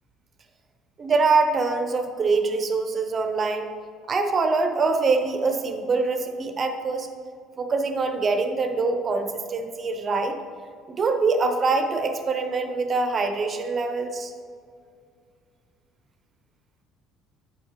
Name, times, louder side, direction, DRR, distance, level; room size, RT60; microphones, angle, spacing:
voice 1, 1.0-3.7 4.1-7.1 7.6-10.4 10.9-14.3, right 4 dB, 30° right, 5 dB, 0.6 m, -24 dB
9.1 x 7.2 x 3.0 m, 2.2 s
cardioid pair, 150°, 0 cm